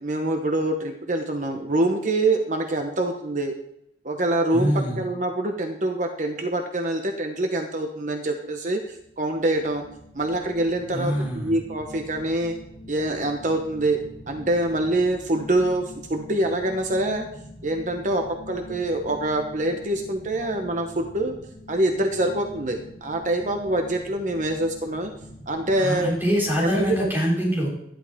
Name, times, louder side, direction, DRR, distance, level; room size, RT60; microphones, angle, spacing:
voice 1, 0.0-3.5 4.0-9.8 10.1-12.6 12.9-14.0 14.3-17.2 17.6-21.3 21.7-25.1 25.5-26.1 26.6-27.1, right 1 dB, 45° right, 4 dB, 1.0 m, -25 dB
voice 2, 4.5-5.0 10.9-11.5 25.8-27.7, equal, 10° right, -4 dB, 3.9 m, -24 dB
sound 1, 9.0-27.2, left 1 dB, 80° left, 4.7 m, -44 dB
13.0 x 11.5 x 3.6 m, 0.77 s
head